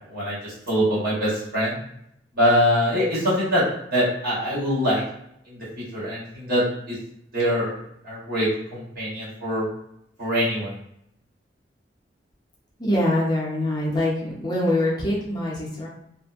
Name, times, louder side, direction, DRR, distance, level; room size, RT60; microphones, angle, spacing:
voice 1, 0.0-1.8 2.3-3.6 3.9-5.0 5.4-7.0 7.3-7.7 8.0-9.6 10.2-10.8, equal, 60° right, -9 dB, 1.4 m, -23 dB
voice 2, 12.8-15.9, left 1 dB, 25° left, -5 dB, 0.6 m, -24 dB
2.5 x 2.1 x 2.4 m, 0.77 s
head